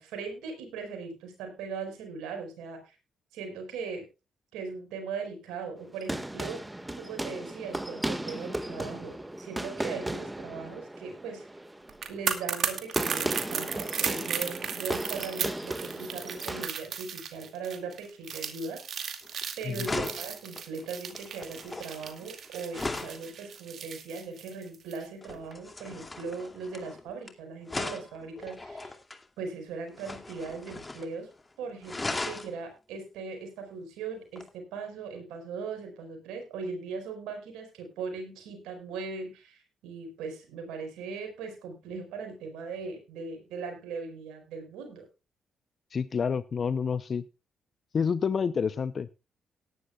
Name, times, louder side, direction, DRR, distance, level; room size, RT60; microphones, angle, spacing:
voice 1, 0.0-2.8 3.3-4.0 4.5-6.6 6.9-11.4 12.1-18.8 19.6-29.0 29.4-31.3 31.6-45.1, right 4 dB, 80° right, 4 dB, 4.9 m, -39 dB
sound 1, 5.8-16.7, right 1 dB, 15° right, 1.7 m, -36 dB
sound 2, 11.9-25.0 25.3-25.5, right 7 dB, 65° right, 2.2 m, -35 dB
sound 3, 19.2-19.4 19.8-23.2 25.2-27.3 27.7-29.2 29.9-31.1 31.4-31.5 31.8-32.5 34.4-34.5, left 2 dB, 25° left, 2.5 m, -37 dB
voice 2, 45.9-47.2 47.9-49.1, left 6 dB, 50° left, 15 dB, 0.7 m, -28 dB
18.0 x 11.0 x 2.4 m, 0.28 s
hypercardioid pair, 50°, 0 cm